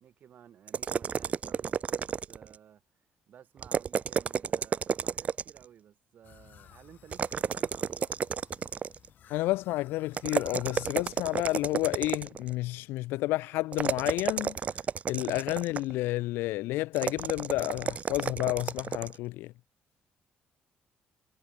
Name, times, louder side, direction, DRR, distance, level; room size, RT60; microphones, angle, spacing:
voice 1, 0.0-2.8 3.3-8.1, right 9 dB, 55° right, 1.4 m, -55 dB
sound 1, 0.7-2.6 3.6-5.6 7.1-9.1 10.1-12.5 13.7-15.9 16.9-19.2, right 7 dB, 40° right, 0.5 m, -32 dB
sound 2, 6.2-11.9, left 10 dB, 60° left, 1.9 m, -57 dB
voice 2, 9.3-14.6 15.1-19.5, left 18 dB, 90° left, 0.5 m, -30 dB
cardioid pair, 105°, 4 cm